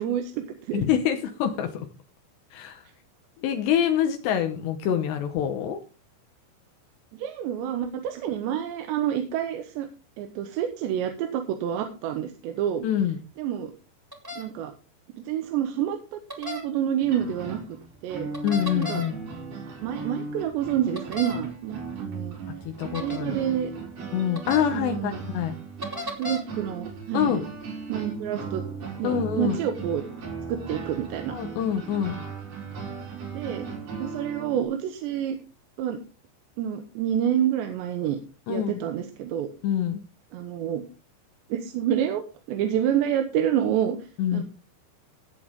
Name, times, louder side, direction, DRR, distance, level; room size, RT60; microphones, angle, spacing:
voice 1, 0.0-0.9 7.2-9.9 10.2-12.9 13.4-13.7 14.4-14.7 15.2-17.6 18.0-18.3 18.8-19.0 19.8-22.4 23.0-23.7 24.7-25.2 26.2-27.4 27.9-28.6 29.0-30.0 30.5-31.4 33.3-33.7 34.0-35.4 35.8-36.0 36.6-38.2 38.5-39.5 40.3-40.8 41.5-42.2 42.5-44.0 44.3-44.4, right 10 dB, 80° right, 6 dB, 3.3 m, -28 dB
voice 2, 0.7-1.9 2.5-2.8 3.4-5.8 12.8-13.2 18.4-19.2 22.7-23.4 24.1-25.6 27.1-27.5 29.0-29.6 31.3-32.2 38.5-38.8 39.6-40.0 44.2-44.4, left 9 dB, 75° left, 6 dB, 3.1 m, -26 dB
sound 1, 14.1-14.4 16.3-16.6 18.3-19.1 21.0-21.4 22.9-23.2 24.3-24.6 25.8-26.4, left 1 dB, 10° right, 1.5 m, -34 dB
sound 2, 17.0-34.6, right 4 dB, 55° right, 6.1 m, -37 dB
17.0 x 8.5 x 3.7 m, 0.35 s
omnidirectional pair, 5.1 m